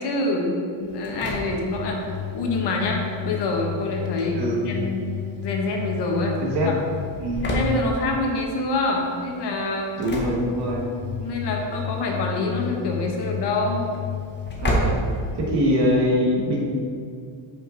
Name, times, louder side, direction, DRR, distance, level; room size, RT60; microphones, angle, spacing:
voice 1, 0.0-5.1 5.4-6.7 7.4-9.9 11.2-13.8 14.6-15.0, left 2 dB, 55° left, 0 dB, 1.0 m, -26 dB
Engine / Slam, 0.8-16.0, left 3 dB, 20° left, 0.8 m, -31 dB
voice 2, 4.3-4.7 6.4-6.7 7.2-7.6 10.0-10.9 14.6-15.0 15.4-16.6, equal, 55° right, -2 dB, 1.3 m, -23 dB
5.5 x 5.2 x 3.8 m, 2.2 s
cardioid pair, 155°, 48 cm